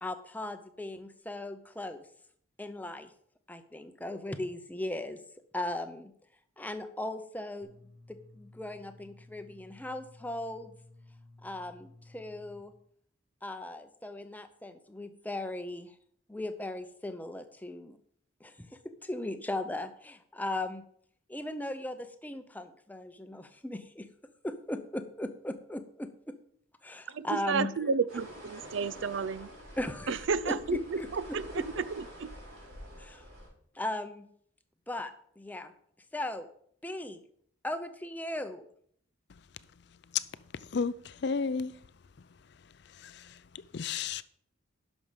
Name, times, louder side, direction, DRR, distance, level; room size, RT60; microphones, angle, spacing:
voice 1, 0.0-2.1 2.6-3.1 3.5-5.2 5.5-6.1 6.6-7.7 8.1-10.7 11.4-12.7 13.4-16.0 16.3-18.0 18.4-20.8 21.3-24.1 24.4-26.3 26.8-27.7 29.8-30.2 30.4-30.6 30.9-31.6 33.0-33.3 33.7-34.3 34.9-35.1 35.4-35.7 36.1-36.5 36.8-37.2 37.6-38.7, left 1 dB, 10° left, 9 dB, 0.6 m, -38 dB
sound 1, 7.6-12.6, left 2 dB, 20° right, 4.1 m, -55 dB
voice 2, 27.1-29.5 30.1-32.3, right 5 dB, 70° right, 17 dB, 0.5 m, -32 dB
sound 2, 28.1-33.5, equal, 90° right, 4.8 m, -48 dB
voice 3, 40.6-41.7 42.9-44.2, left 5 dB, 55° left, 16 dB, 0.4 m, -33 dB
11.0 x 6.2 x 5.1 m, 0.64 s
head